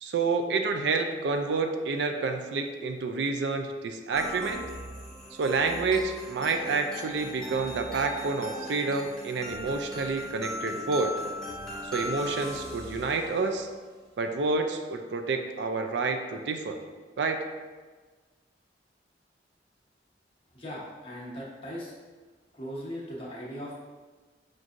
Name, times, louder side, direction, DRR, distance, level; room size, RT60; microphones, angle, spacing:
voice 1, 0.0-4.6 5.4-11.2 11.9-13.7 14.2-16.8 17.2-17.4, right 4 dB, 75° right, 5 dB, 0.4 m, -29 dB
sound 1, 4.1-13.8, equal, 5° left, 0.6 m, -39 dB
voice 2, 20.5-21.9 22.5-23.7, equal, 30° left, -6 dB, 0.9 m, -38 dB
6.0 x 2.6 x 2.5 m, 1.4 s
head